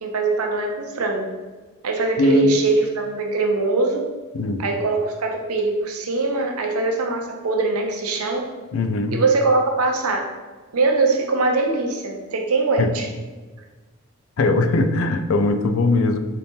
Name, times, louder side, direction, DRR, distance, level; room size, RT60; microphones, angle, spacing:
voice 1, 0.0-1.3 1.8-4.0 4.6-8.5 9.1-10.3 10.7-13.0, right 3 dB, 85° right, 2 dB, 0.6 m, -22 dB
voice 2, 2.2-2.6 4.3-4.6 8.7-9.2 12.8-12.9 14.4-16.2, left 2 dB, 65° left, 7 dB, 0.4 m, -20 dB
4.1 x 2.7 x 3.5 m, 1.3 s
head